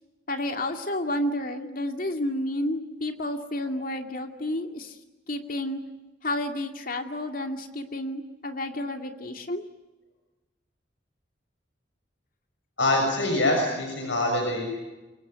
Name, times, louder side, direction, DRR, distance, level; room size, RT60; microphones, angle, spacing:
voice 1, 0.3-5.0 5.3-5.8 6.2-9.6, left 1 dB, 50° left, 5 dB, 2.4 m, -30 dB
voice 2, 12.8-14.6, left 1 dB, 90° left, 2 dB, 6.4 m, -24 dB
25.5 x 22.5 x 9.4 m, 1.1 s
head